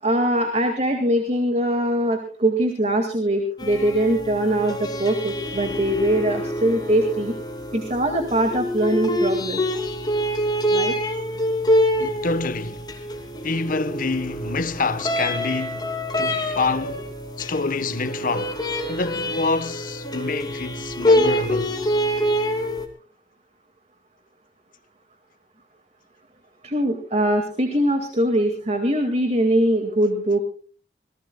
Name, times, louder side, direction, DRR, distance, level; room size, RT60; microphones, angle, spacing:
voice 1, 0.0-7.3 7.7-9.6 10.7-10.9 26.6-30.4, right 1 dB, 40° right, 2.1 m, -22 dB
sound 1, 3.6-22.9, equal, 25° left, 2.8 m, -26 dB
voice 2, 12.0-12.9 13.4-17.1 17.4-18.6 18.9-21.7, left 3 dB, 50° left, 1.1 m, -27 dB
26.0 x 19.0 x 2.3 m
head